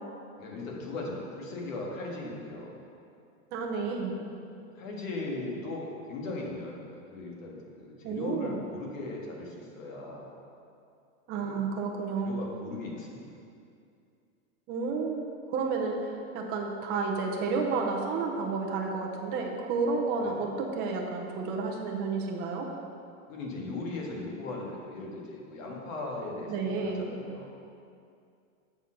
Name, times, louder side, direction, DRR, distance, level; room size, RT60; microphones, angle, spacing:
voice 1, 0.4-2.7 4.0-4.2 4.8-10.3 11.4-11.6 12.2-13.2 20.2-20.5 23.3-27.5, left 2 dB, 65° left, -2 dB, 1.8 m, -38 dB
voice 2, 3.5-4.1 8.0-8.6 11.3-12.4 14.7-16.0 16.3-22.7 26.5-27.1, right 4 dB, 25° right, 1 dB, 0.6 m, -31 dB
6.8 x 4.3 x 6.3 m, 2.4 s
supercardioid pair, 160°, 44 cm